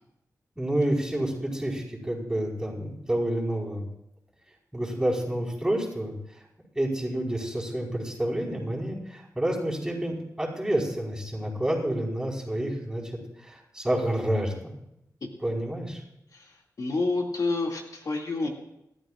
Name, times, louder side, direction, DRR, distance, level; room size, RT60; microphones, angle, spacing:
voice 1, 0.6-3.9 4.7-6.4 6.7-13.0 13.4-14.7 15.4-16.0, right 1 dB, 10° right, -2 dB, 4.8 m, -29 dB
voice 2, 16.3-18.5, left 3 dB, 65° left, 0 dB, 2.4 m, -29 dB
28.0 x 13.5 x 2.5 m, 0.81 s
wide cardioid pair, 95°, 7 cm